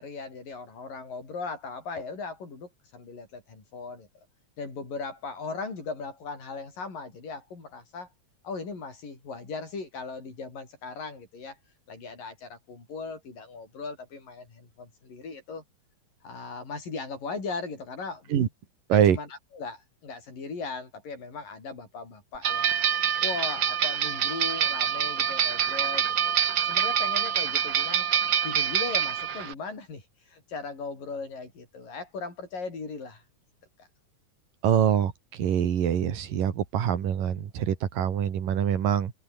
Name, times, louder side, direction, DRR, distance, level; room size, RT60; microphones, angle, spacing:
voice 1, 0.0-4.1 4.6-8.1 8.4-11.6 11.9-15.6 16.2-18.5 18.9-22.8 23.2-26.3 26.6-28.1 28.4-33.2, left 4 dB, 85° left, 8.7 m, -38 dB
sound 1, 22.4-29.5, right 8 dB, 50° right, 1.5 m, -26 dB
voice 2, 34.6-35.1 35.4-39.1, right 9 dB, 85° right, 4.0 m, -24 dB
omnidirectional pair, 3.8 m